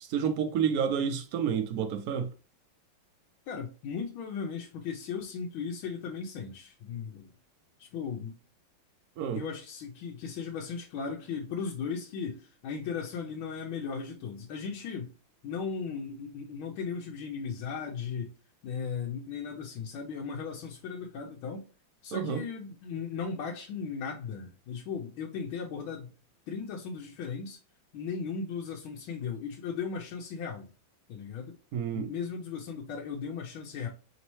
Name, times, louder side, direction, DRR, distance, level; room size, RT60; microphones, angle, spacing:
voice 1, 0.0-2.3 9.2-9.4 22.1-22.4 31.7-32.1, right 7 dB, 80° right, 0.8 m, -29 dB
voice 2, 3.5-7.3 7.8-8.4 9.3-15.1 15.4-18.3 18.6-21.7 22.0-26.1 26.5-27.6 27.9-30.7 31.1-31.5 31.9-33.9, left 6 dB, 85° left, 1.5 m, -37 dB
4.0 x 3.7 x 3.0 m
omnidirectional pair, 2.2 m